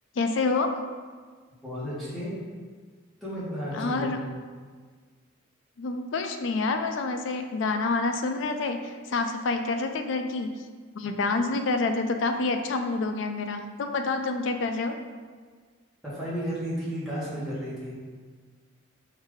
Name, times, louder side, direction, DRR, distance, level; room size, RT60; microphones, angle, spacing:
voice 1, 0.2-0.7 3.7-4.2 5.8-10.5 10.9-15.0, left 3 dB, 65° left, 6 dB, 0.4 m, -27 dB
voice 2, 1.6-2.3 3.2-4.4 16.1-17.9, equal, ahead, -11 dB, 1.2 m, -33 dB
3.9 x 2.7 x 4.7 m, 1.5 s
head